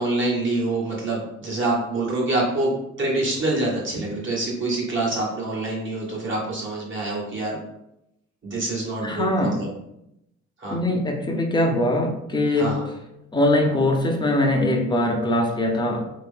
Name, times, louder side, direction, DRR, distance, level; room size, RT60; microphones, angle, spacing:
voice 1, 0.0-2.7 3.0-7.6 8.4-9.7 10.6-10.8 12.6-12.8, right 2 dB, 40° right, -4 dB, 1.4 m, -26 dB
voice 2, 9.0-9.6 10.7-12.7 13.3-16.1, left 1 dB, 15° left, 2 dB, 0.7 m, -22 dB
3.1 x 2.9 x 3.5 m, 0.83 s
cardioid pair, 90°, 30 cm